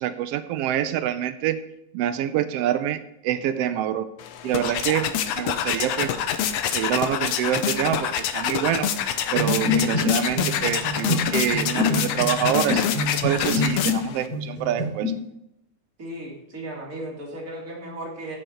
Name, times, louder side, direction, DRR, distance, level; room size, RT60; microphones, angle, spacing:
voice 1, 0.0-1.6 1.9-4.1 4.4-6.1 6.7-8.9 9.3-15.1, right 11 dB, 90° right, 11 dB, 1.3 m, -26 dB
sound 1, 4.2-14.3, left 9 dB, 70° left, 1.7 m, -26 dB
sound 2, 9.3-14.0 14.3-15.1, left 2 dB, 60° right, 4.8 m, -26 dB
voice 2, 16.0-18.4, right 1 dB, 25° right, -2 dB, 3.0 m, -35 dB
15.5 x 7.9 x 4.4 m, 0.82 s
omnidirectional pair, 3.5 m